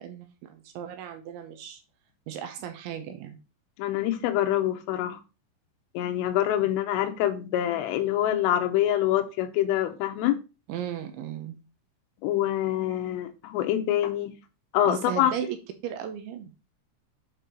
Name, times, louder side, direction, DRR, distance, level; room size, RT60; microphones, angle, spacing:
voice 1, 0.0-1.8 2.3-3.4 10.7-11.6 14.8-15.6 15.8-16.5, right 9 dB, 80° right, 8 dB, 3.0 m, -36 dB
voice 2, 3.8-5.2 6.0-10.4 12.2-14.4 14.7-15.3, left 12 dB, 90° left, 8 dB, 3.4 m, -25 dB
8.5 x 5.4 x 4.3 m, 0.30 s
omnidirectional pair, 5.8 m